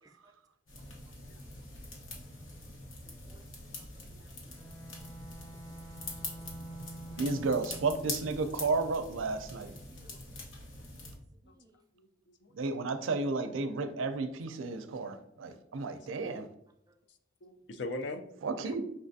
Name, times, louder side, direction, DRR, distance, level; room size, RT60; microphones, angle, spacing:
voice 1, 0.0-0.3 1.1-1.2 2.4-2.5 3.0-3.5 3.7-4.3 4.9-5.1 6.3-6.8 7.1-7.4 9.9-10.2 11.6-11.7, right 2 dB, 20° right, 0.3 m, -63 dB
sound 1, 0.7-11.2, left 2 dB, 80° left, 1.0 m, -44 dB
voice 2, 1.3-1.6 4.2-4.5 11.5-11.6 12.0-12.1 12.4-12.5 15.9-16.1 17.4-18.2 18.7-18.8, left 2 dB, 60° left, 0.4 m, -41 dB
Bowed string instrument, 4.4-8.2, right 2 dB, 15° left, 0.6 m, -48 dB
voice 3, 7.2-9.7 12.6-16.5 18.4-18.8, right 3 dB, 85° right, 0.4 m, -32 dB
5.3 x 3.3 x 2.6 m
head